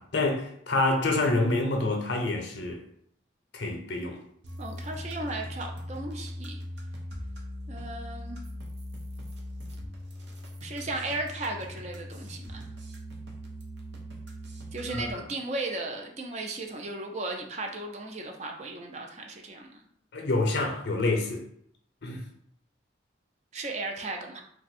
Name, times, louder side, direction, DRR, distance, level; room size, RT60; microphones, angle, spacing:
voice 1, 0.0-2.8 3.5-4.2 14.9-15.2 20.1-21.4 22.0-22.2, left 2 dB, 65° left, 0.6 m, -27 dB
sound 1, 4.4-15.1, equal, 75° right, 0.7 m, -40 dB
voice 2, 4.6-6.6 7.7-8.4 10.6-12.7 14.7-19.9 23.5-24.4, right 2 dB, 35° right, 0.4 m, -35 dB
2.5 x 2.3 x 4.1 m
head